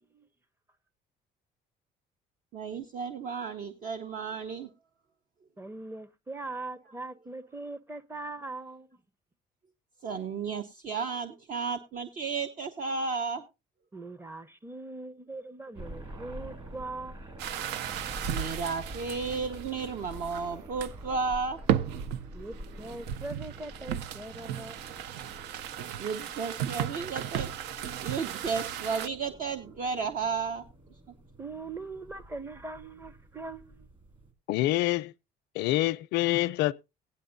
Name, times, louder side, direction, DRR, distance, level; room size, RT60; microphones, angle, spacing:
voice 1, 2.5-4.7 10.0-13.5 18.3-21.6 26.0-27.5 28.0-30.6, right 5 dB, 55° right, 0.9 m, -33 dB
voice 2, 5.6-9.0 13.9-17.2 22.3-25.1 31.4-33.9, right 2 dB, 15° right, 0.6 m, -41 dB
sound 1, 15.7-34.3, right 1 dB, 30° right, 2.2 m, -47 dB
sound 2, 17.4-20.5 20.8-21.2 21.6-29.1, right 10 dB, 85° right, 0.5 m, -35 dB
voice 3, 34.5-35.1 35.5-36.7, left 16 dB, 85° left, 0.5 m, -26 dB
17.0 x 10.0 x 2.6 m
cardioid pair, 110°, 17 cm